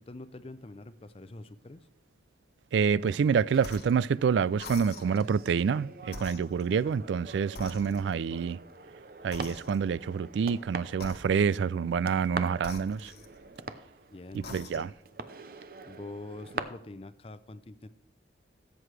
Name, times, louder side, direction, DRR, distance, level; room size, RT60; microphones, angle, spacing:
voice 1, 0.0-1.9 7.8-8.5 8.8-8.9 14.1-14.5 14.7-14.9 15.8-17.9, left 2 dB, 30° left, 0.5 m, -45 dB
voice 2, 2.7-8.6 9.2-13.1 14.3-14.9, right 6 dB, 75° right, 0.3 m, -27 dB
sound 1, 3.0-16.6, right 4 dB, 50° right, 0.7 m, -44 dB
sound 2, 3.6-4.0 4.6-5.3 6.1-7.2 7.6-8.3 9.3-10.1 10.9-11.7 12.6-13.7 14.3-15.0, left 3 dB, 60° left, 1.2 m, -46 dB
15.5 x 7.8 x 3.3 m
head